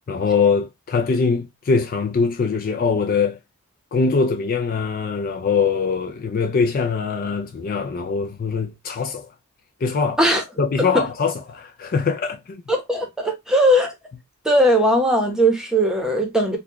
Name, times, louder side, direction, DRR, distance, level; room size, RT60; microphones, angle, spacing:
voice 1, 0.1-3.4 3.9-9.3 9.8-10.2 10.6-12.6, left 5 dB, 40° left, 0.3 m, -22 dB
voice 2, 12.7-13.9 14.4-16.6, equal, 5° right, 0.9 m, -19 dB
4.2 x 2.3 x 2.8 m
head